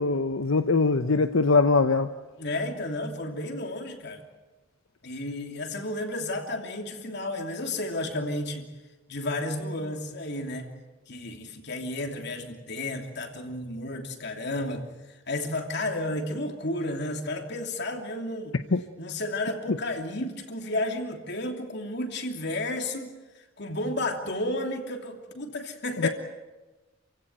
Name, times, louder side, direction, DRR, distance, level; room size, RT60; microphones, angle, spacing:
voice 1, 0.0-2.1 18.7-18.8 19.7-19.8 26.0-26.1, left 3 dB, 85° left, 8 dB, 0.9 m, -22 dB
voice 2, 2.4-4.2 5.0-8.7 9.1-10.7 11.1-14.9 15.3-18.6 19.0-23.1 23.6-26.1, left 1 dB, 60° left, 4 dB, 3.0 m, -32 dB
28.0 x 16.5 x 9.1 m, 1.2 s
head